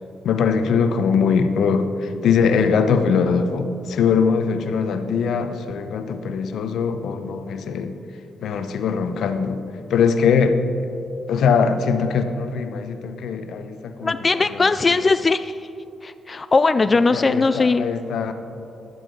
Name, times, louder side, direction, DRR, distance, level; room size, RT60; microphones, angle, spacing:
voice 1, 0.2-8.0 8.4-9.6 9.9-10.6 11.3-14.2 14.5-14.6 17.1-18.3, left 6 dB, 75° left, 9 dB, 0.8 m, -21 dB
voice 2, 14.0-15.6 16.0-17.9, left 3 dB, 35° left, 12 dB, 0.3 m, -19 dB
15.5 x 11.0 x 3.9 m, 2.9 s
cardioid pair, 65°, 0 cm